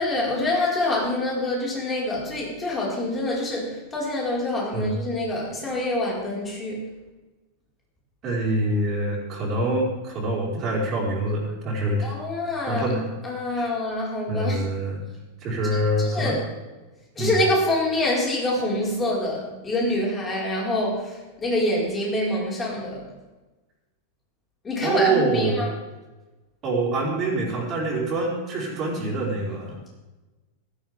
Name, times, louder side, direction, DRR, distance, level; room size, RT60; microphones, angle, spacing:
voice 1, 0.0-6.9 12.0-12.8 13.2-14.6 15.7-16.4 17.1-23.1 24.6-25.7, left 1 dB, 20° left, -4 dB, 5.1 m, -26 dB
voice 2, 8.2-12.1 12.6-13.0 13.5-13.7 14.3-15.0 15.4-16.4 17.2-17.4 24.8-25.6 26.6-29.8, right 2 dB, 30° right, -4 dB, 4.8 m, -25 dB
15.5 x 13.5 x 3.6 m, 1.1 s
figure-of-eight pair, 90°, 0 cm